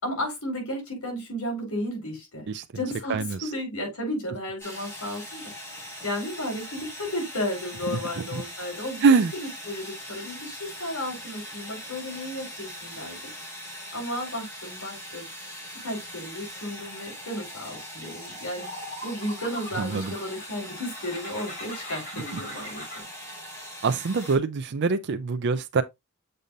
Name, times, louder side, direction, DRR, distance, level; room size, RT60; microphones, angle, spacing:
voice 1, 0.0-2.4 2.7-5.5 6.0-9.0 9.3-13.2 13.9-15.2 15.8-18.7 19.0-23.0, left 1 dB, 75° left, 4.6 m, -33 dB
voice 2, 3.1-3.5 7.9-8.0 8.3-8.4 9.0-9.3 19.8-20.2 22.3-22.4 23.8-25.8, right 4 dB, 55° right, 0.5 m, -24 dB
sound 1, 4.6-24.4, equal, 15° left, 3.7 m, -41 dB
sound 2, 17.9-18.0 18.5-23.0, equal, 35° left, 4.0 m, -41 dB
6.7 x 5.2 x 2.7 m
head